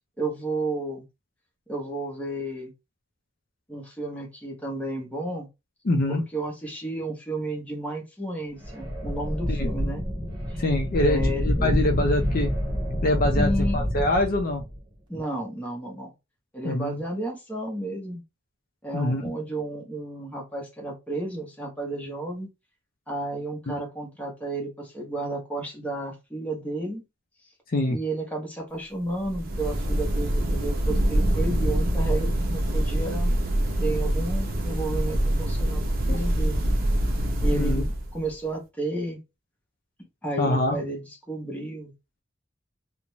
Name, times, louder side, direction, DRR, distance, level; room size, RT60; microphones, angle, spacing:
voice 1, 0.2-1.0 1.7-2.7 3.7-5.5 6.1-10.1 10.5-10.6 11.1-11.8 13.3-13.8 15.1-16.1 16.5-18.2 18.8-22.5 23.1-27.0 27.9-33.3 33.8-36.7 37.4-39.2 40.2-41.9, right 2 dB, 10° left, 0.8 m, -32 dB
voice 2, 5.8-6.2 9.5-9.7 10.6-12.5 13.0-14.6 16.6-17.0 18.9-19.2 23.7-23.8 27.7-28.0 36.1-36.2 37.5-37.8 40.4-40.8, left 1 dB, 50° left, 0.5 m, -25 dB
sound 1, 8.6-14.8, equal, 25° right, 0.9 m, -27 dB
sound 2, 29.1-38.3, right 1 dB, 50° right, 0.6 m, -25 dB
2.5 x 2.1 x 3.0 m
head